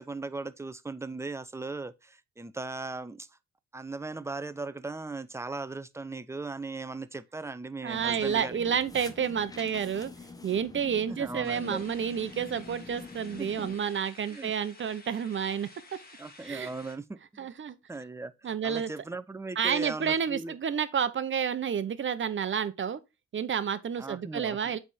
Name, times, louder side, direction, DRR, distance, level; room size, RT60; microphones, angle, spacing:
voice 1, 0.0-3.3 3.7-8.8 11.1-11.8 13.4-13.7 14.3-14.5 16.2-17.5 17.9-20.6 24.0-24.8, right 3 dB, 10° right, 0.5 m, -38 dB
voice 2, 7.8-10.1 10.4-15.7 16.4-16.7 17.4-17.8 18.4-18.9 19.6-23.0 23.3-24.8, right 7 dB, 40° right, 0.8 m, -30 dB
sound 1, 7.9-13.8, left 4 dB, 10° left, 0.9 m, -45 dB
sound 2, 11.4-17.0, left 3 dB, 30° left, 1.8 m, -52 dB
8.3 x 3.5 x 4.2 m
cardioid pair, 90°, 30 cm